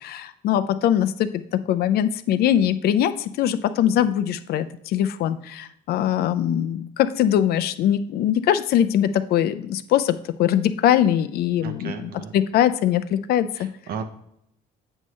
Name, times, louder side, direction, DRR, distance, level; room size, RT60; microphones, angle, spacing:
voice 1, 0.0-1.3 1.7-13.7, left 10 dB, 65° left, 11 dB, 0.5 m, -22 dB
voice 2, 11.6-12.3 13.9-14.0, right 6 dB, 65° right, 8 dB, 0.9 m, -33 dB
8.1 x 5.4 x 3.1 m, 0.74 s
cardioid pair, 110°, 17 cm